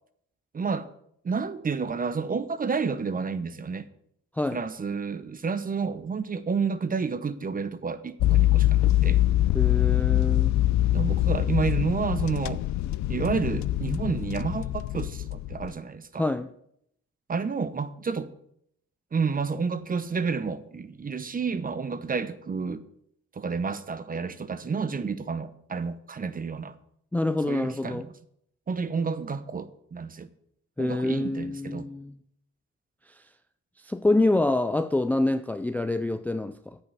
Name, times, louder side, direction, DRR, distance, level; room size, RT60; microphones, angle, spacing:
voice 1, 0.5-0.9 1.2-3.9 4.5-9.2 10.5-12.6 13.1-16.2 17.3-18.3 19.1-22.8 23.3-26.7 27.5-28.1 28.7-30.3 30.8-31.9, right 5 dB, 30° right, 0.8 m, -30 dB
sound 1, 8.2-15.7, left 14 dB, 65° left, 0.5 m, -24 dB
voice 2, 9.5-10.5 16.2-16.5 27.1-28.1 30.8-32.1 33.8-36.8, left 2 dB, 5° left, 0.4 m, -26 dB
8.5 x 5.6 x 8.0 m
cardioid pair, 90°, 30 cm